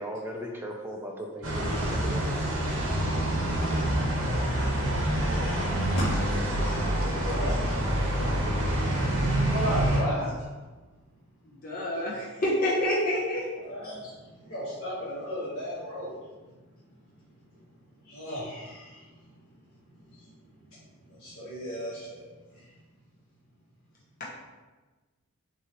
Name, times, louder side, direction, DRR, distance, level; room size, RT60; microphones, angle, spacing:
voice 1, 0.0-2.3, equal, 10° right, 1 dB, 0.4 m, -37 dB
sound 1, 1.4-10.0, right 1 dB, 60° right, 1.0 m, -27 dB
voice 2, 4.4-4.7 5.2-8.4 9.2-10.4 13.6-16.2 18.0-19.4 20.0-20.3 21.1-22.7, equal, 75° left, -10 dB, 1.3 m, -36 dB
voice 3, 11.4-13.4, left 1 dB, 40° left, -7 dB, 0.9 m, -27 dB
6.2 x 2.8 x 3.0 m, 1.3 s
head